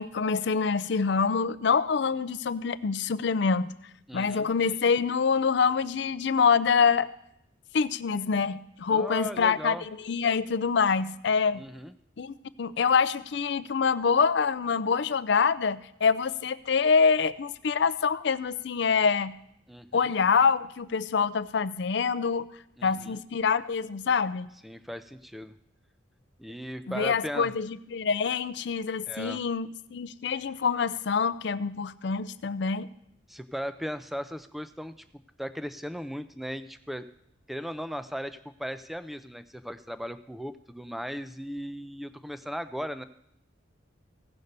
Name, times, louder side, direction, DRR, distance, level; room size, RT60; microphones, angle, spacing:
voice 1, 0.0-3.7 4.1-7.1 7.7-9.8 10.1-11.6 12.2-19.3 19.9-22.5 22.8-24.5 26.9-32.9, left 5 dB, 60° left, 16 dB, 0.5 m, -25 dB
voice 2, 4.1-4.5 8.9-9.9 11.5-11.9 19.7-20.1 22.8-23.2 24.6-25.5 26.4-27.5 29.1-29.4 33.3-34.9 35.4-37.1 37.5-43.0, equal, ahead, 12 dB, 0.4 m, -37 dB
16.0 x 5.5 x 6.6 m, 0.76 s
head